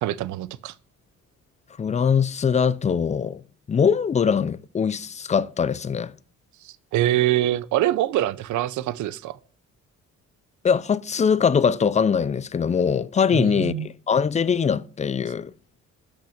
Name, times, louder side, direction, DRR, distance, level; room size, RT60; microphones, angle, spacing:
voice 1, 0.0-0.7 6.6-9.4 13.3-13.9, right 13 dB, 75° right, 0.5 m, -24 dB
voice 2, 1.8-3.4 3.7-6.1 10.6-15.5, left 6 dB, 25° left, 0.4 m, -22 dB
6.1 x 5.9 x 6.4 m
cardioid pair, 90°, 30 cm